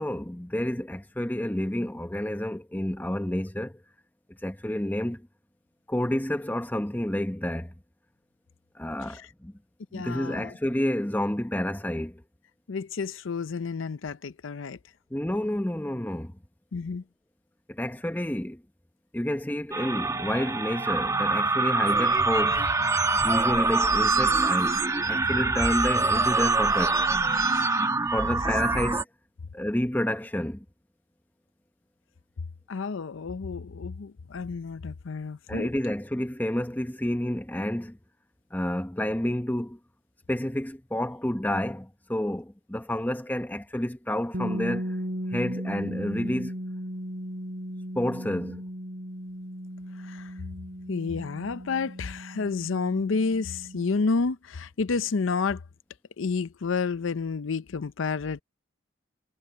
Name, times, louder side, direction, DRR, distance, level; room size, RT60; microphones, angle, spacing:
voice 1, 0.0-3.8 4.4-5.3 5.9-7.7 8.7-9.5 9.9-12.2 15.1-16.3 17.7-18.6 19.1-22.7 23.2-27.0 28.1-29.1 29.5-30.6 35.5-38.0 38.5-39.8 40.3-45.0 45.3-46.5 47.9-48.6, left 1 dB, 10° left, 0.8 m, -29 dB
voice 2, 9.9-10.5 12.7-14.8 16.7-17.0 32.7-35.7 50.0-50.3 50.9-55.6 56.2-58.4, left 4 dB, 75° left, 0.6 m, -30 dB
sound 1, 19.7-29.0, right 3 dB, 15° right, 1.1 m, -24 dB
sound 2, 44.3-54.1, equal, 50° right, 6.5 m, -36 dB
head